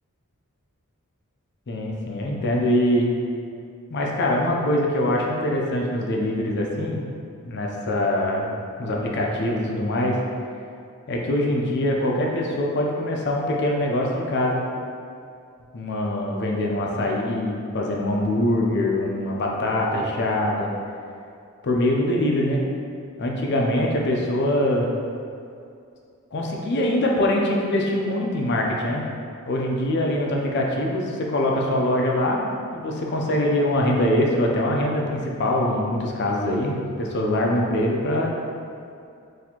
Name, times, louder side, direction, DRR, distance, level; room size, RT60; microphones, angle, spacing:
voice 1, 1.7-3.1 3.9-7.0 7.5-8.5 8.8-10.2 11.1-14.6 15.7-20.7 21.6-22.6 23.2-24.9 26.3-29.0 29.5-32.4 32.7-38.3, left 1 dB, 50° left, -1 dB, 0.5 m, -23 dB
4.2 x 2.7 x 2.8 m, 2.4 s
head